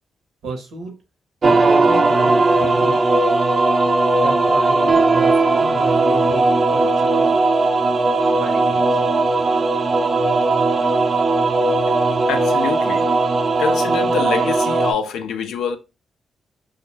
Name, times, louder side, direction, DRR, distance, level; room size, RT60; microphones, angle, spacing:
voice 1, 0.4-0.9 1.4-3.0 4.2-7.4 8.2-9.0, right 3 dB, 85° right, 0.7 m, -33 dB
sound 1, 1.4-14.9, right 3 dB, 45° right, 0.4 m, -17 dB
voice 2, 12.3-13.1 13.6-15.8, left 6 dB, 90° left, 0.4 m, -25 dB
2.3 x 2.1 x 3.0 m
cardioid pair, 65°, 0 cm